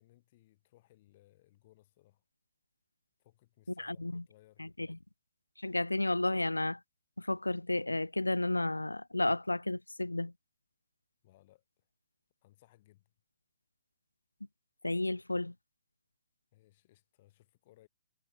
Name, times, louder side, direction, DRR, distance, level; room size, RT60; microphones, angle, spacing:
voice 1, 0.0-2.2 3.2-4.7 11.2-11.6 12.4-13.1 16.5-17.9, left 16 dB, 40° left, 5.7 m, -64 dB
voice 2, 3.8-4.2 4.6-5.0 5.6-6.8 7.2-10.3 14.8-15.5, left 2 dB, 80° left, 0.7 m, -32 dB
figure-of-eight pair, 120°, 0 cm